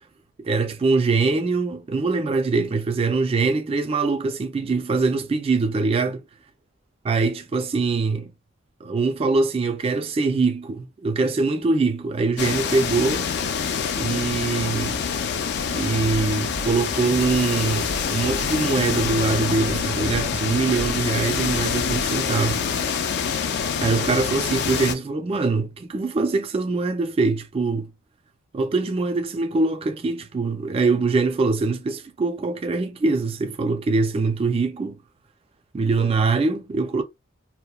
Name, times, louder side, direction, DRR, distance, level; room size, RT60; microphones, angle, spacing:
voice 1, 0.4-6.2 7.1-8.3 8.8-13.3 13.9-15.0 15.7-22.6 23.8-27.9 28.5-35.0 35.7-37.0, right 3 dB, 30° right, 0.3 m, -23 dB
sound 1, 12.4-24.9, left 6 dB, 55° left, 0.4 m, -26 dB
sound 2, 15.5-22.1, right 2 dB, 85° right, 0.5 m, -38 dB
2.8 x 2.0 x 2.2 m
head